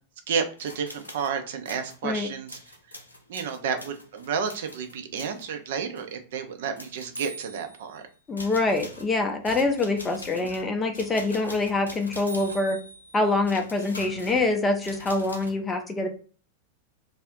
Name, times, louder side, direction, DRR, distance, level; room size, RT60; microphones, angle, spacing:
voice 1, 0.3-2.6 3.3-8.0 10.4-10.5, right 6 dB, 55° right, 6 dB, 0.4 m, -31 dB
sound 1, 0.6-1.3 1.6-2.0 2.5-5.5 6.0-6.1 6.8-7.9 8.4-15.5, equal, 80° left, 0.4 m, -43 dB
voice 2, 8.3-12.8 13.1-16.1, left 2 dB, 15° left, 5 dB, 0.5 m, -25 dB
2.4 x 2.0 x 3.6 m, 0.40 s
figure-of-eight pair, 90°, 0 cm